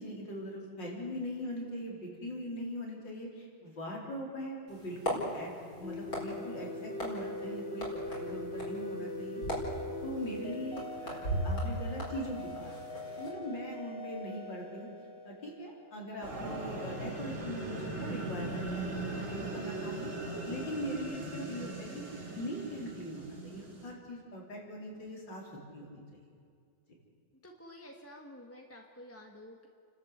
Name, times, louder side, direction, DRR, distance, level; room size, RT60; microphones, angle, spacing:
voice 1, 0.0-5.5 5.8-9.4 10.0-12.7 13.2-14.9 15.2-20.1 20.5-22.0 22.4-26.2, equal, 65° left, -2 dB, 4.9 m, -41 dB
sound 1, 4.7-13.3, equal, 45° left, 5.2 m, -39 dB
sound 2, 5.8-16.1, left 2 dB, 30° left, 2.8 m, -41 dB
sound 3, 16.2-23.9, right 2 dB, 35° right, 3.2 m, -39 dB
voice 2, 27.4-29.7, left 1 dB, 10° left, 1 dB, 1.4 m, -50 dB
30.0 x 12.5 x 8.2 m, 2.3 s
omnidirectional pair, 2.1 m